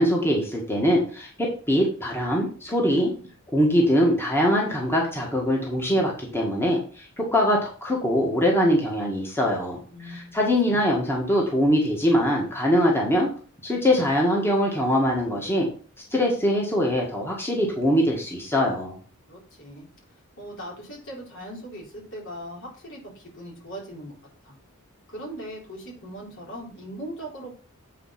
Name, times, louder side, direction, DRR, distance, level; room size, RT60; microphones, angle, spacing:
voice 1, 0.0-3.1 3.5-13.3 13.6-15.7 16.1-19.0, equal, 10° left, -2 dB, 1.7 m, -22 dB
voice 2, 9.9-10.4 10.7-10.8 19.3-19.9 20.4-24.2 24.4-24.6 25.1-27.5, right 1 dB, 60° left, -2 dB, 4.0 m, -39 dB
8.4 x 4.6 x 5.8 m, 0.40 s
head